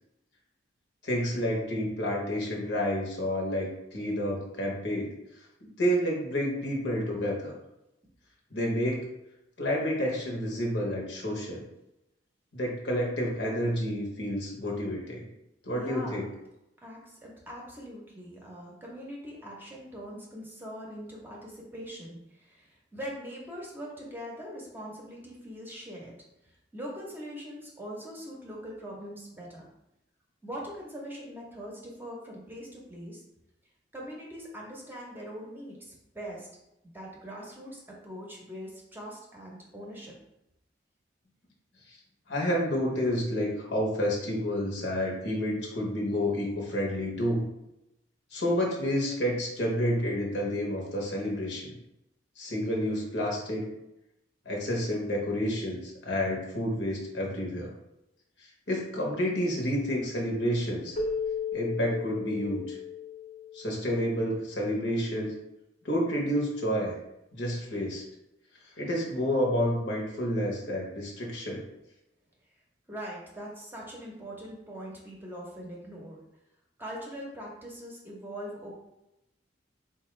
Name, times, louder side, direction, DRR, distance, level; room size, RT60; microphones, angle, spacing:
voice 1, 1.0-5.1 5.6-7.5 8.5-9.1 9.6-11.6 12.5-15.3 15.6-16.3 42.3-47.5 48.3-51.8 52.4-53.7 54.4-57.7 58.7-61.0 61.5-62.8 63.5-65.3 65.8-67.0 67.3-68.0 68.8-71.6, equal, 70° left, -2 dB, 1.0 m, -29 dB
voice 2, 15.7-16.3 16.8-26.1 26.7-29.7 30.4-33.2 33.9-36.5 36.9-40.1 72.9-76.2 76.8-78.7, equal, 10° right, -3 dB, 0.7 m, -42 dB
Keyboard (musical), 61.0-64.2, left 5 dB, 35° left, 0.6 m, -35 dB
4.2 x 2.3 x 3.1 m, 0.88 s
head